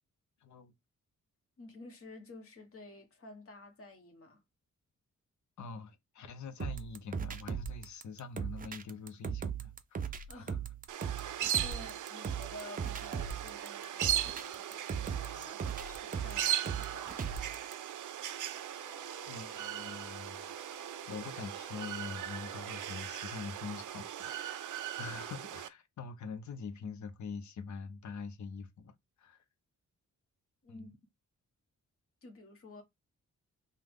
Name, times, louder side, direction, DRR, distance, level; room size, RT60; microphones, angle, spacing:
voice 1, 0.4-0.7 5.6-10.7 11.4-11.5 19.3-20.5 21.1-24.7 25.0-29.4 30.7-30.9, left 5 dB, 70° left, 0.8 m, -45 dB
voice 2, 1.6-4.4 10.3-10.5 11.6-17.3 30.6-31.0 32.2-32.8, left 2 dB, 45° left, 1.2 m, -51 dB
sound 1, 6.6-17.7, right 7 dB, 30° right, 0.4 m, -38 dB
sound 2, 10.9-25.7, right 11 dB, 80° right, 0.5 m, -38 dB
sound 3, 18.4-23.0, left 6 dB, 15° left, 1.6 m, -56 dB
5.5 x 2.2 x 3.5 m
wide cardioid pair, 175°, 30 cm